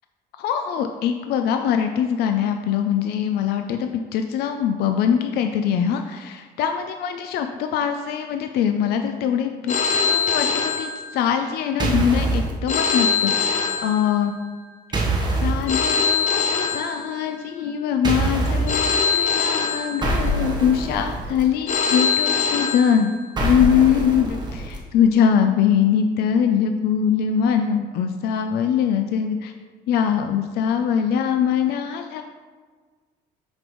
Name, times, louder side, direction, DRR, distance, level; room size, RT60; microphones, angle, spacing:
voice 1, 0.4-14.3 14.9-15.0 15.4-29.5 29.9-32.2, left 8 dB, 75° left, 6 dB, 0.4 m, -22 dB
Telephone, 9.7-11.5 12.7-14.5 15.7-17.5 18.7-20.5 21.7-23.5, left 5 dB, 45° left, 0.8 m, -23 dB
sound 1, 11.8-12.5 14.9-15.6 18.0-18.8 20.0-21.4 23.4-24.8, right 2 dB, 25° right, 1.1 m, -24 dB
6.0 x 5.3 x 3.0 m, 1.5 s
cardioid pair, 110°, 17 cm